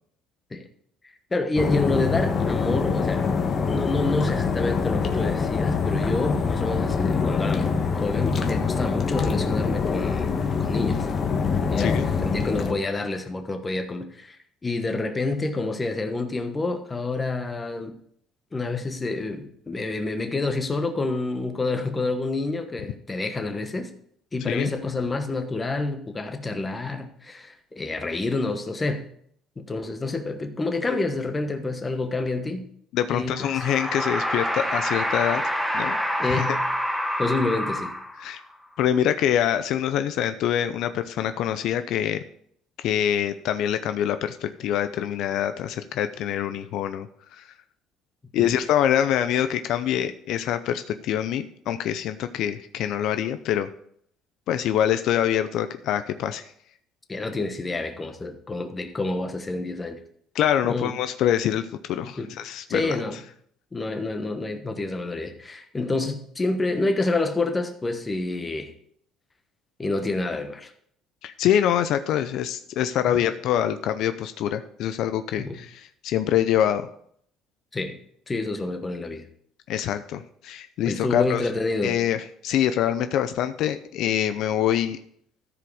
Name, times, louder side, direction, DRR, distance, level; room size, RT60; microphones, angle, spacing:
voice 1, 1.0-3.2 3.7-11.1 11.7-17.9 18.5-23.9 24.3-29.1 29.6-32.7 33.1-33.5 36.2-36.6 37.2-37.9 48.4-48.6 57.1-60.0 60.6-60.9 62.0-62.3 62.7-63.2 63.7-68.7 69.8-70.7 73.1-73.2 75.4-75.6 77.7-78.0 78.3-79.2 80.9-82.0, left 2 dB, 20° left, 6 dB, 1.2 m, -28 dB
sound 1, 1.6-12.7, left 5 dB, 40° left, 1.2 m, -24 dB
voice 2, 11.8-12.1 24.5-24.7 32.9-35.4 35.7-36.0 36.2-36.6 38.2-38.4 38.8-42.2 42.8-47.1 47.3-47.5 48.3-53.7 54.5-56.5 60.3-63.0 71.2-76.9 79.7-81.4 81.8-85.0, left 10 dB, 70° left, 10 dB, 0.5 m, -25 dB
sound 2, 33.4-38.4, equal, ahead, 1.1 m, -27 dB
14.0 x 5.0 x 4.8 m, 0.66 s
cardioid pair, 120°, 0 cm